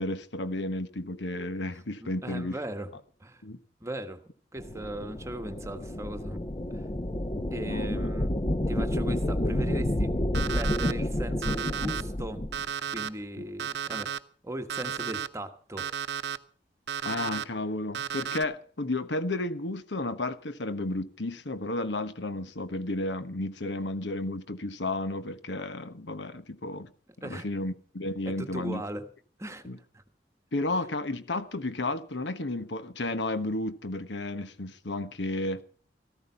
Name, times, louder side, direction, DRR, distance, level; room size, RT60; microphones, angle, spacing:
voice 1, 0.0-2.5 3.4-3.6 7.6-8.1 17.0-26.9 27.2-28.8 29.6-29.8 30.5-35.6, left 2 dB, 80° left, 1.2 m, -32 dB
voice 2, 2.0-2.9 3.2-3.4 3.8-4.2 4.5-6.4 6.7-6.9 7.5-8.3 8.7-10.2 10.5-12.4 12.9-14.1 14.4-15.9 27.2-27.5 28.2-29.1 29.4-29.6 29.9-30.0, right 1 dB, 15° right, 1.3 m, -38 dB
sound 1, 4.6-12.6, left 1 dB, 25° left, 0.6 m, -30 dB
Alarm, 10.3-10.9 11.4-12.0 12.5-13.1 13.6-14.2 14.7-15.3 15.8-16.4 16.9-17.4 17.9-18.4, right 8 dB, 70° right, 0.7 m, -33 dB
14.0 x 14.0 x 5.6 m
head